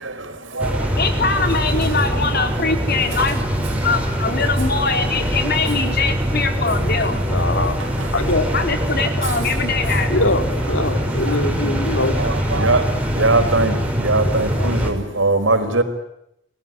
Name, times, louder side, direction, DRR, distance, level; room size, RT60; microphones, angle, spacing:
sound 1, 0.6-14.9, equal, 10° right, 6.1 m, -22 dB
voice 1, 1.0-3.5 3.8-7.2 8.5-10.1 11.9-12.1 12.4-13.3 13.7-14.1 14.5-15.2 15.6-15.8, left 4 dB, 55° left, 4.2 m, -23 dB
voice 2, 7.3-7.8 8.1-8.5 10.1-12.2, left 2 dB, 75° left, 3.0 m, -22 dB
voice 3, 12.2-12.8 13.1-15.8, right 2 dB, 85° right, 4.7 m, -20 dB
29.0 x 19.0 x 9.6 m
head